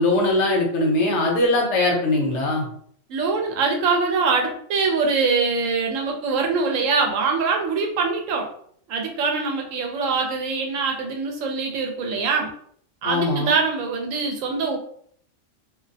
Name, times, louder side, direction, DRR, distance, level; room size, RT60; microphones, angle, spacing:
voice 1, 0.0-2.7 13.0-13.5, left 2 dB, 65° left, 0 dB, 0.9 m, -21 dB
voice 2, 3.1-8.5 8.9-12.5 13.0-14.8, right 4 dB, 80° right, 1 dB, 1.0 m, -23 dB
2.5 x 2.0 x 2.6 m, 0.63 s
omnidirectional pair, 1.3 m